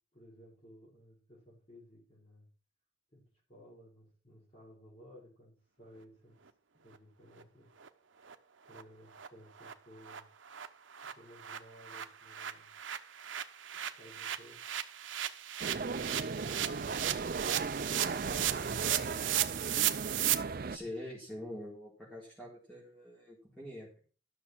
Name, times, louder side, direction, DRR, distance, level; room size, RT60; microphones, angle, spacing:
voice 1, 0.1-2.5 3.1-6.4 6.8-7.7 8.7-10.3 11.1-12.7 13.2-13.3 13.7-14.6 17.6-19.3, equal, 35° left, -7 dB, 4.8 m, -56 dB
sound 1, 7.4-7.5 7.8-7.9 8.2-8.4 8.7-8.8 9.1-9.3 9.6-9.7 10.1-10.2 10.4-20.3, right 12 dB, 80° right, 1.0 m, -36 dB
sound 2, 15.6-20.8, right 4 dB, 50° right, 0.5 m, -37 dB
voice 2, 20.7-24.0, left 1 dB, 5° left, -7 dB, 4.3 m, -45 dB
13.0 x 6.7 x 6.2 m, 0.39 s
head